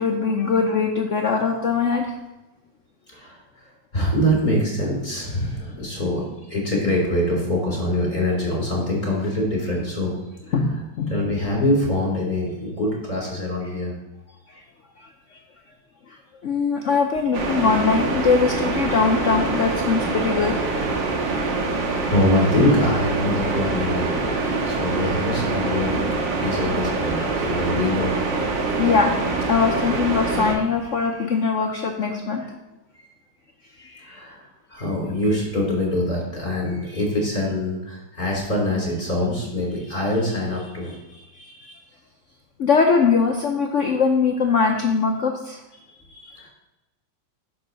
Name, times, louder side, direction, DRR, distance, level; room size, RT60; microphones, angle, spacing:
voice 1, 0.0-2.1 10.5-11.1 16.4-20.6 27.2-27.3 28.8-29.1 29.5-32.4 33.8-34.1 42.6-45.6, left 5 dB, 60° left, 2 dB, 0.8 m, -21 dB
voice 2, 3.9-6.2 6.5-10.1 10.5-10.8 11.1-13.9 21.6-26.0 26.4-28.1 34.0-41.8 45.9-46.5, left 1 dB, 25° left, -3 dB, 3.4 m, -24 dB
sound 1, 17.3-30.5, right 3 dB, 85° right, 2.0 m, -25 dB
9.5 x 6.5 x 4.0 m, 1.0 s
omnidirectional pair, 2.0 m